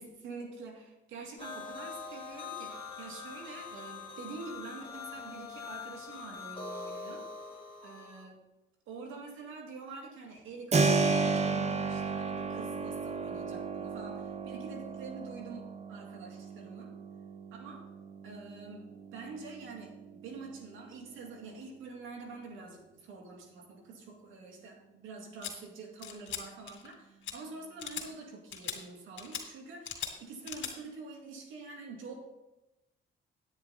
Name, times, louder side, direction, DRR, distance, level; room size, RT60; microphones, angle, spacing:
voice 1, 0.0-7.3 7.8-8.4 8.9-16.9 17.5-17.8 18.2-18.8 19.1-32.2, right 4 dB, 90° right, 1 dB, 2.3 m, -46 dB
sound 1, 1.4-8.2, left 4 dB, 25° left, 2.3 m, -43 dB
Keyboard (musical), 10.7-21.4, right 4 dB, 35° right, 1.0 m, -34 dB
sound 2, 25.4-25.5 26.0-26.4 26.7-26.9 27.2-27.3 27.8-28.1 28.5-28.8 29.2-29.4 29.8-30.1 30.5-30.7, left 9 dB, 75° left, 2.3 m, -39 dB
9.9 x 9.1 x 4.1 m, 0.96 s
cardioid pair, 90°, 20 cm